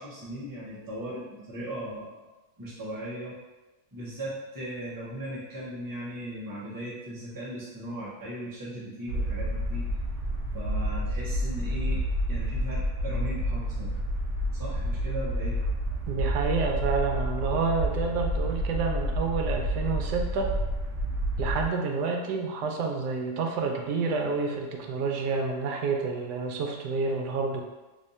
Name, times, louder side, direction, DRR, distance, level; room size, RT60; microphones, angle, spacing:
voice 1, 0.0-2.3 2.6-3.4 3.9-9.9 10.5-14.0 14.5-15.6, right 1 dB, 15° right, -7 dB, 0.7 m, -38 dB
sound 1, 9.1-21.6, equal, 65° right, 1.0 m, -29 dB
voice 2, 16.1-20.5 21.4-27.6, right 4 dB, 80° right, 2 dB, 1.2 m, -29 dB
3.4 x 3.3 x 2.7 m, 1.1 s
omnidirectional pair, 1.8 m